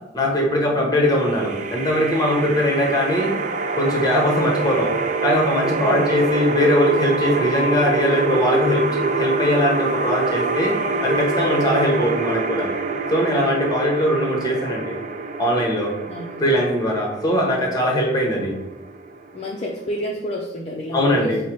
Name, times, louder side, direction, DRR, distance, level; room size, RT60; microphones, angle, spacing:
voice 1, 0.1-3.3 3.8-4.9 5.2-10.7 11.0-12.7 13.1-15.0 15.4-15.9 16.4-18.5 20.9-21.4, left 1 dB, 20° left, 0 dB, 0.9 m, -20 dB
sound 1, 1.0-20.0, right 3 dB, 45° right, 0.3 m, -26 dB
voice 2, 16.1-16.5 19.3-21.3, equal, 40° left, -1 dB, 0.4 m, -28 dB
4.6 x 2.0 x 4.5 m, 0.99 s
head